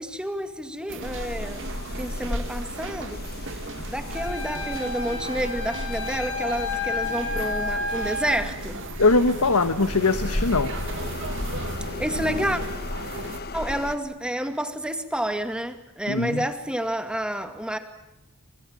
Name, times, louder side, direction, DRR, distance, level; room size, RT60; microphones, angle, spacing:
voice 1, 0.0-1.7 2.0-3.2 3.9-8.8 12.0-12.6 13.5-17.8, equal, 5° right, 2.2 m, -29 dB
sound 1, 0.9-13.4, right 2 dB, 60° right, 2.3 m, -37 dB
sound 2, 1.0-14.0, left 1 dB, 45° left, 1.3 m, -34 dB
Wind instrument woodwind instrument, 4.1-8.4, left 2 dB, 70° left, 6.4 m, -31 dB
voice 2, 9.0-10.7 16.1-16.4, left 3 dB, 90° left, 1.4 m, -21 dB
28.5 x 25.0 x 7.4 m
head